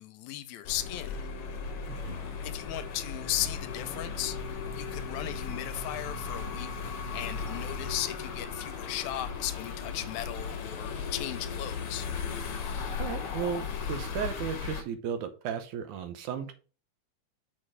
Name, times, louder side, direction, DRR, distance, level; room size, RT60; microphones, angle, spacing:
voice 1, 0.0-1.3 2.4-4.4 4.8-12.1, left 13 dB, 80° left, 1.9 m, -36 dB
sound 1, 0.6-14.8, left 5 dB, 60° left, 1.6 m, -36 dB
voice 2, 1.9-2.2 13.0-16.5, right 8 dB, 80° right, 2.4 m, -35 dB
6.6 x 4.1 x 4.9 m
omnidirectional pair, 3.4 m